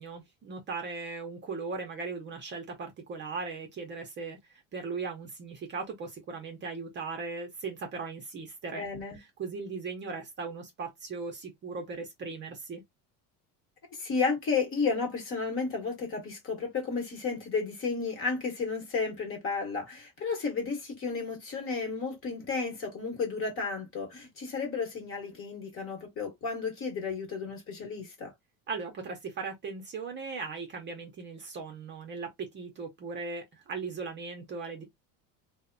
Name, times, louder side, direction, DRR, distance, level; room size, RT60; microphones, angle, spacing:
voice 1, 0.0-8.9 9.2-12.8 28.7-34.9, right 4 dB, 30° right, 0.6 m, -38 dB
voice 2, 8.7-9.2 13.9-28.3, left 4 dB, 35° left, 1.0 m, -32 dB
2.6 x 2.1 x 2.5 m
cardioid pair, 140°, 37 cm